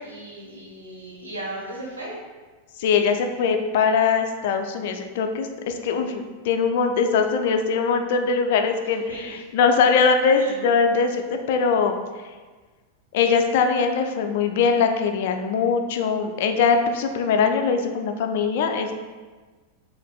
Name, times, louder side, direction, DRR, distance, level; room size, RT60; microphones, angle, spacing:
voice 1, 0.0-2.1 9.1-9.4 10.4-10.5, right 1 dB, 75° right, -4 dB, 1.1 m, -36 dB
voice 2, 2.8-11.2 11.5-12.0 13.1-18.9, left 5 dB, 50° left, 6 dB, 0.3 m, -21 dB
5.8 x 2.5 x 2.2 m, 1.4 s
figure-of-eight pair, 90°, 0 cm